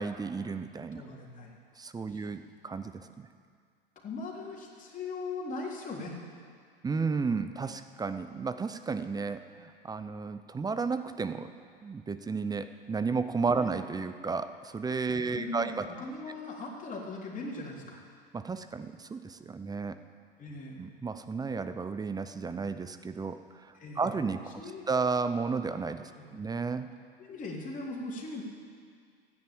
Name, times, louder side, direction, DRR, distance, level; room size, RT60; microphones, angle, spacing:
voice 1, 0.0-1.0 1.8-3.3 6.8-11.5 11.8-15.9 18.3-20.0 20.8-24.5 24.9-26.9, right 4 dB, 15° right, 11 dB, 0.7 m, -33 dB
voice 2, 0.9-1.5 2.1-2.3 4.0-6.1 13.5-13.7 15.1-18.0 20.4-20.9 23.7-24.2 24.5-24.9 26.1-26.3 27.2-28.4, left 3 dB, 25° left, -2 dB, 3.6 m, -40 dB
14.5 x 10.0 x 8.8 m, 2.1 s
hypercardioid pair, 90°, 29 cm